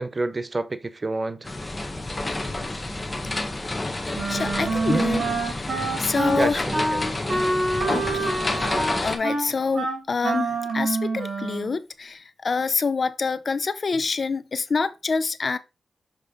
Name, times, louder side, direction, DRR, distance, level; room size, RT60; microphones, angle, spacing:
voice 1, 0.0-1.5 4.9-5.0 6.4-7.0, right 2 dB, 35° right, 0.7 m, -28 dB
sound 1, 1.4-9.2, left 2 dB, 25° left, 1.5 m, -29 dB
Wind instrument woodwind instrument, 4.1-11.7, right 2 dB, 75° right, 2.5 m, -26 dB
voice 2, 4.3-6.6 7.9-15.6, left 4 dB, 55° left, 0.7 m, -27 dB
6.7 x 4.9 x 4.1 m
cardioid pair, 65°, 0 cm